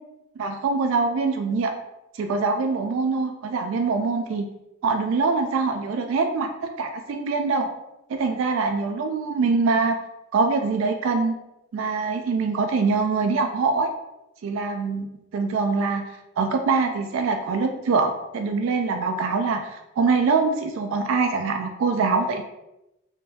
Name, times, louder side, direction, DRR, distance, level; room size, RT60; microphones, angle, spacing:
voice 1, 0.4-1.7 2.2-4.5 4.8-7.7 8.1-10.0 10.3-11.3 11.7-13.9 14.4-15.1 15.3-16.0 16.4-22.4, right 4 dB, 65° right, 5 dB, 0.3 m, -24 dB
3.6 x 2.6 x 2.6 m, 0.91 s
head